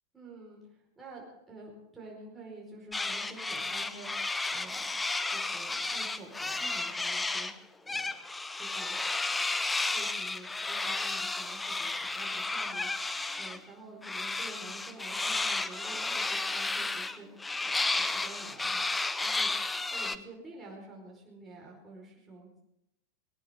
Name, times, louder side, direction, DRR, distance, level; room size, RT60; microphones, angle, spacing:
voice 1, 0.1-5.0 5.3-8.1 8.5-9.0 9.9-18.8 19.2-22.5, right 2 dB, 10° right, -3 dB, 4.9 m, -49 dB
sound 1, 2.9-7.5 7.9-13.6 14.0-20.2, left 3 dB, 10° left, 0.7 m, -32 dB
20.5 x 18.5 x 3.8 m, 0.81 s
figure-of-eight pair, 90°, 0 cm